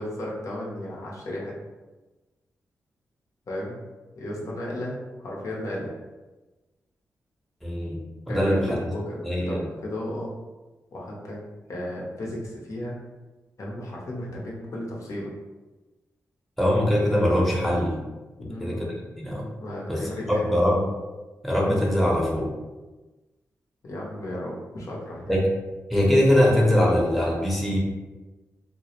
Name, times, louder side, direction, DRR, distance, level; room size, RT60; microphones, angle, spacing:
voice 1, 0.0-1.5 3.5-3.8 4.2-5.9 8.3-10.3 10.9-11.4 11.7-13.0 13.6-15.3 18.4-18.8 19.6-20.7 23.8-25.4, left 1 dB, 60° left, -3 dB, 0.7 m, -34 dB
voice 2, 7.6-8.0 8.3-8.8 9.2-9.7 16.6-18.0 18.6-18.9 19.2-19.4 19.9-20.8 21.4-22.5 25.3-25.5 25.9-27.8, left 1 dB, ahead, -3 dB, 0.8 m, -22 dB
2.1 x 2.0 x 2.9 m, 1.2 s
cardioid pair, 50°, 6 cm